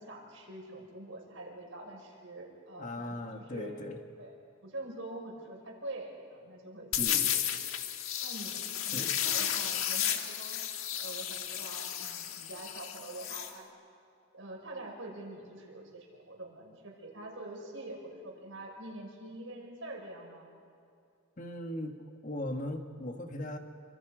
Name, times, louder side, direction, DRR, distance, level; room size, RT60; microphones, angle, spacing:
voice 1, 0.0-3.7 4.2-4.3 4.6-7.5 8.2-10.6 11.0-13.7 14.3-20.5, right 1 dB, 70° right, 0 dB, 5.6 m, -45 dB
voice 2, 2.8-4.0 7.0-7.3 8.8-9.2 21.4-22.0 22.2-23.6, left 1 dB, 35° left, 5 dB, 1.6 m, -38 dB
sound 1, 6.9-13.5, left 10 dB, 80° left, 1.6 m, -33 dB
29.0 x 25.5 x 5.1 m, 2.4 s
head